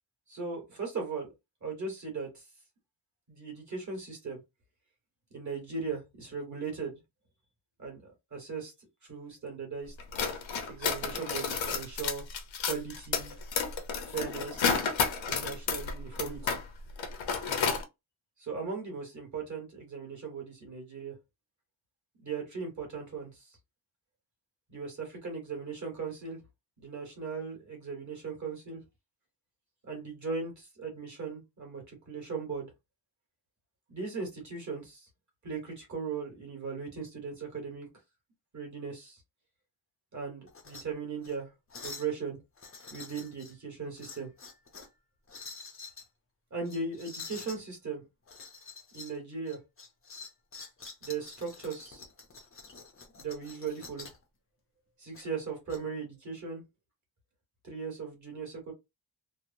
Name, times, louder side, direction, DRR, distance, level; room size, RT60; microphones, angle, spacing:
voice 1, 0.3-1.3 1.6-2.4 3.3-4.4 5.3-7.0 7.8-8.7 9.0-9.9 10.7-12.2 12.6-13.4 14.0-14.9 15.3-16.6 18.4-21.1 22.2-23.5 24.7-26.4 26.8-28.8 29.9-32.7 33.9-35.1 35.4-37.9 38.5-39.2 40.1-41.5 41.8-42.4 42.9-44.3 46.5-48.0 48.9-49.6 51.0-52.0 53.1-54.1 55.0-56.6 57.6-58.7, right 5 dB, 35° right, 1.3 m, -38 dB
sound 1, 10.0-16.6 16.9-17.8, left 6 dB, 70° left, 0.7 m, -31 dB
sound 2, 40.5-40.8 41.2-41.4 41.7-42.1 42.6-43.5 44.0-44.9 45.3-46.1 46.7-47.6 48.3-49.2 49.5-54.2 55.1-55.8, left 4 dB, 30° left, 0.5 m, -47 dB
3.0 x 2.0 x 2.5 m
wide cardioid pair, 165°, 48 cm